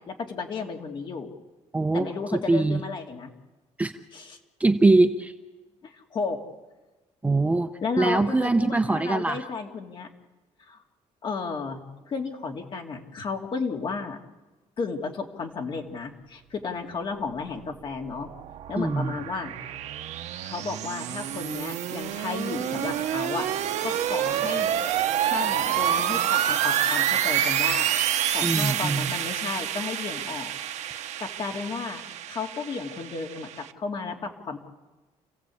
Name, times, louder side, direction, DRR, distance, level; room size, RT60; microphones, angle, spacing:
voice 1, 0.1-1.3 1.9-3.3 4.1-4.4 5.8-6.4 7.8-10.1 10.7-10.8 11.2-14.2 14.8-18.3 18.7-19.5 20.4-24.7 25.2-28.0 28.3-30.5 31.2-32.0 32.3-34.6, left 4 dB, 40° left, 2 dB, 2.6 m, -33 dB
voice 2, 1.7-2.1 2.5-2.8 3.8-3.9 4.6-5.3 7.2-7.7 8.0-9.4 18.8-19.1 28.4-29.1, right 2 dB, 10° right, 7 dB, 0.7 m, -22 dB
sound 1, 17.7-33.7, right 11 dB, 65° right, 1.1 m, -28 dB
29.0 x 16.0 x 8.5 m, 1.2 s
cardioid pair, 170°, 12 cm